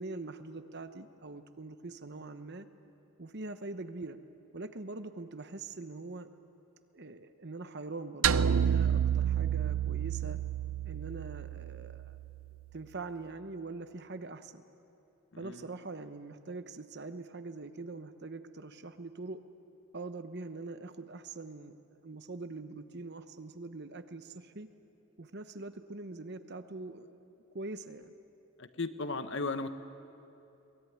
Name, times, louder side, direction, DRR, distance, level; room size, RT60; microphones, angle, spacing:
voice 1, 0.0-2.7 3.2-4.2 4.5-6.3 6.9-10.4 10.8-12.2 12.7-14.6 15.4-19.4 19.9-24.7 25.2-28.1, right 3 dB, 50° right, 10 dB, 1.1 m, -43 dB
sound 1, 8.2-12.6, right 8 dB, 75° right, 0.6 m, -30 dB
voice 2, 28.6-29.7, left 3 dB, 60° left, 10 dB, 1.1 m, -35 dB
22.5 x 21.0 x 9.5 m, 2.8 s
head